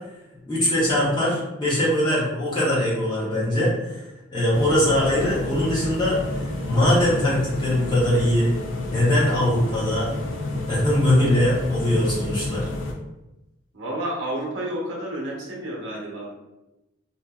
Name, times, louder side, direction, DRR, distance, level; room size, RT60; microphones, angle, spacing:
voice 1, 0.5-4.0 4.3-8.5 8.9-10.1 10.7-12.7, left 1 dB, 20° left, -7 dB, 0.9 m, -21 dB
sound 1, 4.5-12.9, left 2 dB, 65° left, 0.5 m, -30 dB
voice 2, 13.7-16.3, right 1 dB, 65° right, -3 dB, 0.8 m, -30 dB
2.7 x 2.6 x 2.3 m, 0.98 s
head